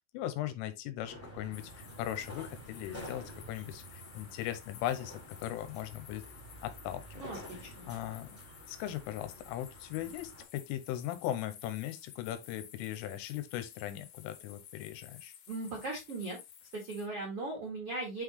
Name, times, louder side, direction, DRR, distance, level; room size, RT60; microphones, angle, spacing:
voice 1, 0.1-6.2 6.6-7.2 7.9-8.3 8.7-15.3, left 12 dB, 85° left, 3.3 m, -38 dB
sound 1, 1.0-10.4, equal, 15° left, 0.4 m, -50 dB
sound 2, 1.5-17.1, left 9 dB, 65° left, 2.8 m, -54 dB
voice 2, 7.1-7.9 15.5-16.4 16.7-18.2, right 2 dB, 80° right, 1.3 m, -38 dB
8.5 x 4.0 x 3.2 m
omnidirectional pair, 5.9 m